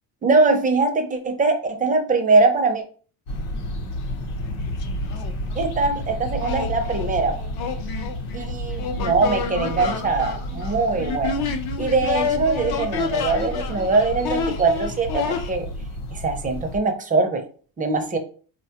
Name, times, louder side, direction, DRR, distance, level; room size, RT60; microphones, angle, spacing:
voice 1, 0.2-2.8 5.6-7.3 8.3-11.4 11.8-15.7 16.1-17.4 17.8-18.2, right 3 dB, 20° right, 5 dB, 0.4 m, -22 dB
sound 1, 3.3-16.8, equal, 85° left, 0.9 m, -31 dB
sound 2, 4.0-4.1 4.4-5.7 6.4-15.5, left 6 dB, 55° left, 0.6 m, -29 dB
4.0 x 2.2 x 2.8 m, 0.41 s
cardioid pair, 120°, 46 cm